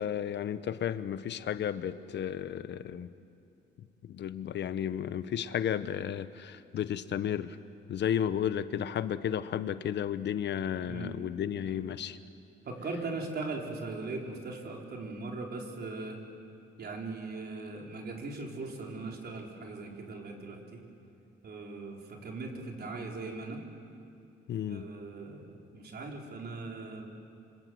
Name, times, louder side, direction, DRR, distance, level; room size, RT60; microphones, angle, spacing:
voice 1, 0.0-3.1 4.0-7.6 7.9-12.2 24.5-24.9, left 9 dB, 65° left, 13 dB, 0.9 m, -33 dB
voice 2, 12.6-16.2 16.8-20.8 21.4-23.6 24.7-27.1, right 3 dB, 55° right, 1 dB, 4.5 m, -39 dB
26.5 x 25.5 x 7.8 m, 2.6 s
cardioid pair, 90°, 20 cm